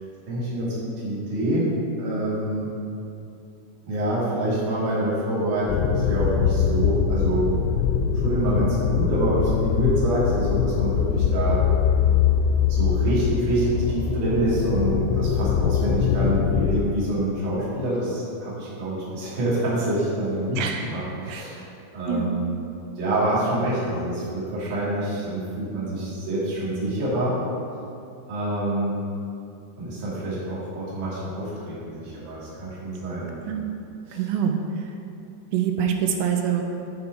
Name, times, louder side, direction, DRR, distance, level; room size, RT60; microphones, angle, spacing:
voice 1, 0.3-1.7 2.0-2.7 3.8-7.5 8.1-11.6 12.7-21.6 21.9-22.5 23.0-27.4 28.3-29.0 29.8-33.3 34.1-34.2, right 1 dB, 45° right, -9 dB, 3.7 m, -26 dB
sound 1, 5.7-16.8, left 7 dB, 85° left, 2.9 m, -22 dB
voice 2, 20.6-20.9 21.3-21.7 22.1-22.3 33.4-33.6 34.1-34.9 35.5-36.6, right 7 dB, 80° right, 3 dB, 2.7 m, -25 dB
14.0 x 5.3 x 4.7 m, 2.6 s
omnidirectional pair, 5.4 m